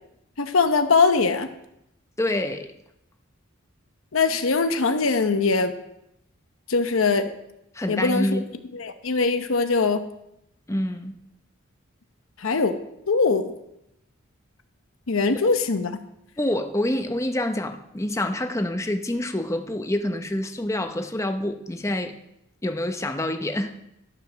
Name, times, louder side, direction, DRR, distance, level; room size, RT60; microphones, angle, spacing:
voice 1, 0.4-1.5 4.1-5.7 6.7-7.3 7.9-8.4 8.7-10.0 12.4-12.8 13.1-13.5 15.1-15.9, left 4 dB, 80° left, 8 dB, 0.8 m, -21 dB
voice 2, 2.2-2.7 7.7-8.4 10.7-11.1 15.4-15.5 16.4-22.1 22.6-23.8, left 1 dB, 15° left, 6 dB, 0.7 m, -27 dB
13.0 x 5.1 x 6.2 m, 0.81 s
head